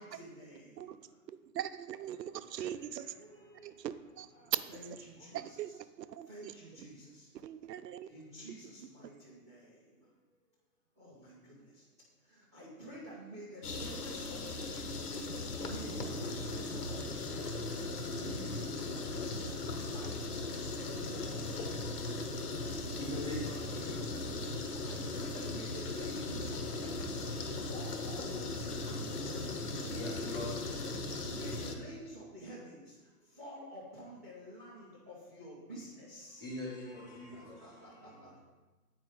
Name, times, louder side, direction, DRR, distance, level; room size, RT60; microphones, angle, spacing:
voice 1, 0.0-1.2 2.3-3.9 4.3-5.8 6.3-7.3 8.1-10.2 11.0-11.9 12.2-30.0 31.0-36.4 36.8-38.4, right 1 dB, 10° right, -12 dB, 0.4 m, -51 dB
voice 2, 1.3-3.1 3.6-4.6 5.3-6.5 7.3-8.1, right 11 dB, 85° right, 12 dB, 0.6 m, -40 dB
sound 1, 13.6-31.7, left 2 dB, 70° left, 1.3 m, -38 dB
voice 3, 23.0-24.4 29.8-30.7 36.4-37.5, left 1 dB, 10° left, -4 dB, 1.4 m, -42 dB
8.5 x 4.9 x 3.9 m, 1.2 s
hypercardioid pair, 145°, 48 cm